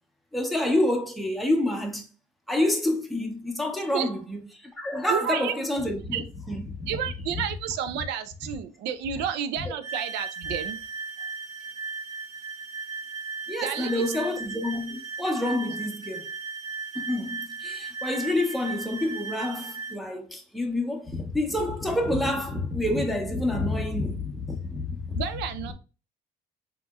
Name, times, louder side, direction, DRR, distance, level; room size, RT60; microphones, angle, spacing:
voice 1, 0.3-2.1 2.5-4.4 4.8-6.2 6.5-6.9 13.5-16.3 17.0-25.2, left 1 dB, ahead, 0.8 m, -28 dB
voice 2, 5.1-5.5 6.1-6.2 6.9-10.8 13.6-14.3 25.1-25.7, right 9 dB, 90° right, 0.5 m, -31 dB
sound 1, 9.8-20.0, right 4 dB, 45° right, 1.0 m, -36 dB
4.0 x 2.9 x 2.3 m
cardioid pair, 110°, 17 cm